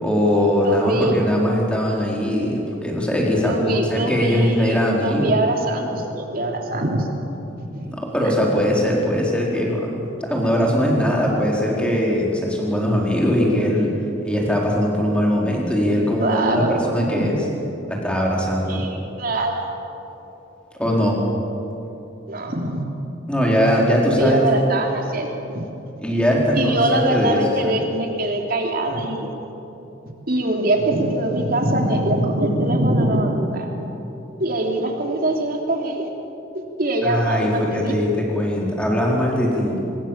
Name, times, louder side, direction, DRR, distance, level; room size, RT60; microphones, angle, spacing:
voice 1, 0.0-5.3 7.9-14.0 14.2-17.3 17.9-18.8 20.8-21.2 23.3-24.4 26.0-27.8 37.0-39.8, equal, 5° left, -2 dB, 4.4 m, -20 dB
voice 2, 0.6-1.2 3.4-7.1 7.6-7.9 15.9-16.8 17.1-17.3 18.7-19.7 22.3-22.8 24.2-25.7 26.5-29.3 30.3-33.7 34.4-36.1 36.8-37.9, right 1 dB, 50° right, 2 dB, 3.2 m, -23 dB
25.0 x 21.5 x 7.5 m, 3.0 s
head